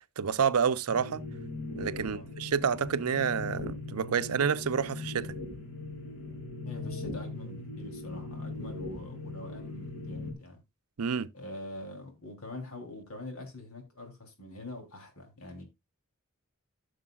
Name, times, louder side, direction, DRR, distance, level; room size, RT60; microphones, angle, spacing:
voice 1, 0.2-1.3 1.8-5.3 11.0-11.3, right 6 dB, 85° right, 0.6 m, -29 dB
sound 1, 0.9-10.3, left 2 dB, 60° left, 2.7 m, -40 dB
voice 2, 6.7-10.6 11.3-15.6, left 2 dB, 80° left, 3.2 m, -44 dB
15.0 x 6.6 x 2.3 m
head